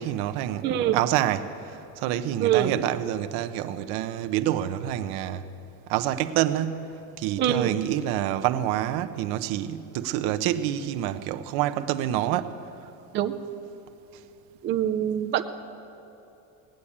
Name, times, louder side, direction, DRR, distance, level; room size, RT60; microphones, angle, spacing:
voice 1, 0.0-0.7 0.9-5.5 5.9-12.6, right 12 dB, 75° right, 10 dB, 0.8 m, -27 dB
voice 2, 0.6-1.0 2.4-2.7 7.4-7.8 13.1-13.3 14.6-15.4, right 11 dB, 30° right, 7 dB, 0.4 m, -24 dB
18.0 x 8.6 x 8.5 m, 2.9 s
cardioid pair, 165°, 38 cm